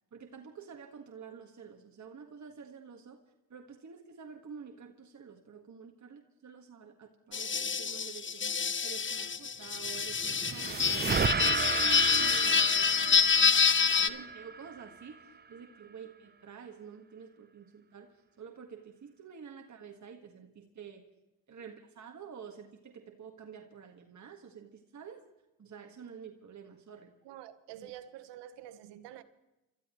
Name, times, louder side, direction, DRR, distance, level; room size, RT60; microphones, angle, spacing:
voice 1, 0.1-3.2 3.5-8.5 8.8-13.3 13.9-21.0 21.5-25.2 25.6-27.1 27.8-27.9, right 6 dB, 45° right, 1.7 m, -49 dB
sound 1, 7.3-14.1, left 6 dB, 30° left, 0.8 m, -27 dB
sound 2, 9.8-15.2, right 5 dB, 25° right, 0.6 m, -34 dB
voice 2, 27.2-29.2, right 11 dB, 85° right, 1.2 m, -47 dB
29.0 x 13.5 x 3.1 m
supercardioid pair, 55°, 41 cm